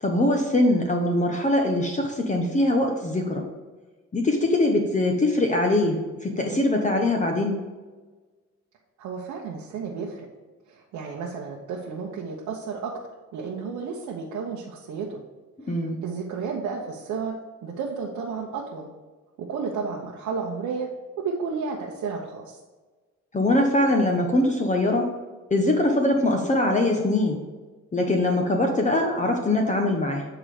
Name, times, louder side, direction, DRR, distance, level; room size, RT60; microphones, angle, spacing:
voice 1, 0.0-3.4 4.1-7.6 15.7-16.0 23.3-25.1 25.5-27.4 27.9-30.3, left 1 dB, 25° left, 2 dB, 1.0 m, -22 dB
voice 2, 9.0-10.3 10.7-12.9 13.3-15.2 15.6-17.4 17.6-18.9 19.4-20.9 21.2-22.6, right 5 dB, 80° right, -2 dB, 1.0 m, -32 dB
8.9 x 3.9 x 4.9 m, 1.3 s
cardioid pair, 90°, 30 cm